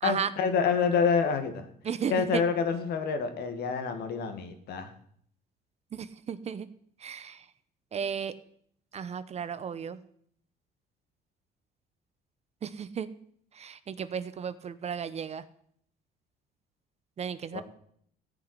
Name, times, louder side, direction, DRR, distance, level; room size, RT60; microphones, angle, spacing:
voice 1, 0.0-1.7 2.1-4.9 17.5-17.6, left 6 dB, 70° left, 8 dB, 2.1 m, -27 dB
voice 2, 1.8-2.4 5.9-6.7 7.0-7.4 7.9-8.3 8.9-10.0 12.6-13.1 13.6-15.4 17.2-17.6, right 7 dB, 40° right, 14 dB, 0.9 m, -34 dB
15.0 x 6.1 x 9.7 m, 0.66 s
cardioid pair, 110°, 17 cm